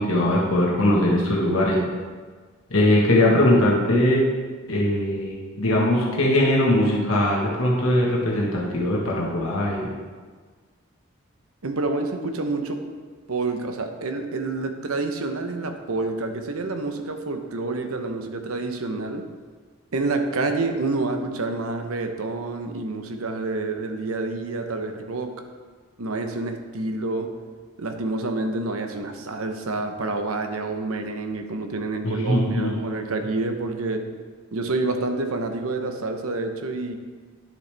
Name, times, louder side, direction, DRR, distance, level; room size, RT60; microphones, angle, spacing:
voice 1, 0.0-1.8 2.7-4.2 4.7-9.9 32.0-32.7, left 1 dB, 70° left, -3 dB, 1.4 m, -20 dB
voice 2, 11.6-12.9 13.3-19.3 19.9-25.4 26.0-27.4 27.8-34.0 34.5-37.0, right 3 dB, 80° right, 6 dB, 0.8 m, -28 dB
10.5 x 6.7 x 3.4 m, 1.5 s
head